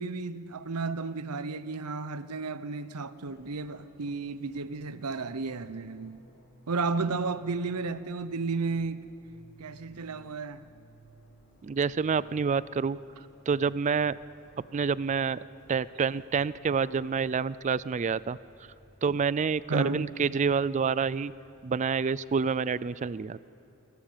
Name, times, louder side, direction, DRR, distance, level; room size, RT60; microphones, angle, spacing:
voice 1, 0.0-6.2 6.7-9.0 9.6-10.6 19.7-20.1, right 3 dB, 85° right, 0.8 m, -33 dB
Fixed-wing aircraft airplane, 3.2-22.9, equal, 55° left, 5.8 m, -59 dB
voice 2, 11.6-13.0 13.5-14.2 14.7-15.4 15.7-18.4 19.0-21.3 21.6-23.4, right 5 dB, 30° right, 0.4 m, -28 dB
28.5 x 12.5 x 7.3 m
head